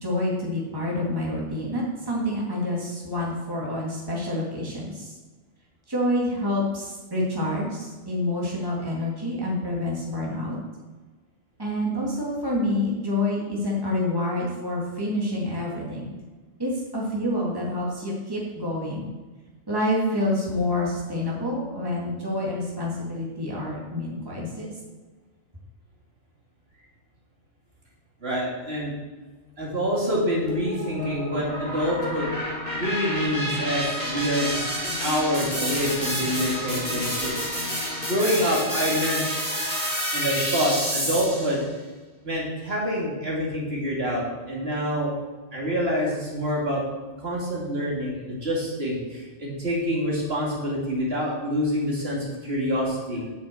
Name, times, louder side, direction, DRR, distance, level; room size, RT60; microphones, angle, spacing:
voice 1, 0.0-5.1 5.9-10.6 11.6-16.1 16.6-19.1 19.7-24.7, left 1 dB, 20° right, -4 dB, 2.4 m, -27 dB
voice 2, 28.2-28.9 29.6-32.3 32.8-34.7 35.0-37.5 38.1-39.3 40.1-41.6 42.2-45.1 45.5-46.8 47.2-53.2, equal, 55° right, -4 dB, 2.8 m, -26 dB
sound 1, 30.5-41.6, equal, 10° left, 4.0 m, -29 dB
8.6 x 6.4 x 7.6 m, 1.3 s
omnidirectional pair, 1.2 m